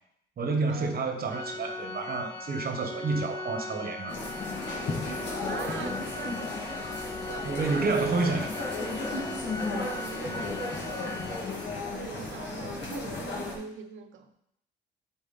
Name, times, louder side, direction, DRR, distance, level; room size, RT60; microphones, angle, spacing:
voice 1, 0.4-4.2 7.4-8.6, right 4 dB, 50° right, 5 dB, 1.1 m, -29 dB
Organ, 1.3-12.0, left 3 dB, 15° left, 0.9 m, -39 dB
sound 1, 4.1-13.6, left 2 dB, 60° left, 2.1 m, -34 dB
voice 2, 5.5-6.7 7.0-7.5 9.6-11.4 11.9-14.3, right 6 dB, 75° right, 7 dB, 0.8 m, -43 dB
7.9 x 4.2 x 4.1 m, 0.74 s
cardioid pair, 90°, 20 cm